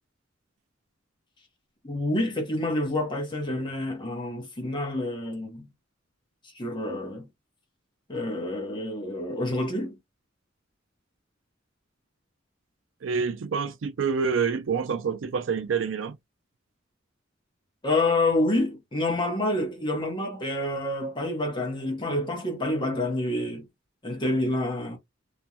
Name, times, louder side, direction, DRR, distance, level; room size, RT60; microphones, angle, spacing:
voice 1, 1.8-5.7 6.5-7.3 8.1-10.0 17.8-23.7 24.0-25.0, left 1 dB, 25° left, 0.8 m, -28 dB
voice 2, 13.0-16.2, right 6 dB, 70° right, 0.4 m, -27 dB
2.5 x 2.2 x 2.8 m
head